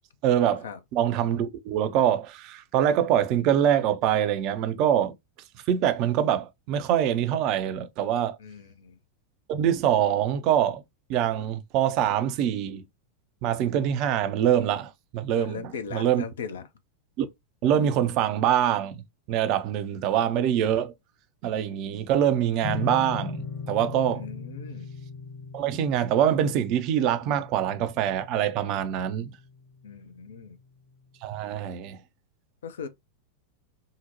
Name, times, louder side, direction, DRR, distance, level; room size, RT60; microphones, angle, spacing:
voice 1, 0.2-0.6 0.9-5.2 5.7-8.4 9.5-10.8 11.1-12.8 13.4-15.6 15.9-16.2 17.2-17.3 17.6-19.0 19.3-20.9 21.4-24.3 25.5-29.3 31.2-32.0, right 10 dB, 40° right, 0.4 m, -24 dB
voice 2, 8.4-9.0 15.4-16.7 24.1-24.9 29.8-30.6 32.6-32.9, left 6 dB, 65° left, 0.5 m, -38 dB
sound 1, 22.6-29.8, left 6 dB, 35° left, 1.0 m, -39 dB
3.7 x 2.1 x 2.8 m
figure-of-eight pair, 90°, 0 cm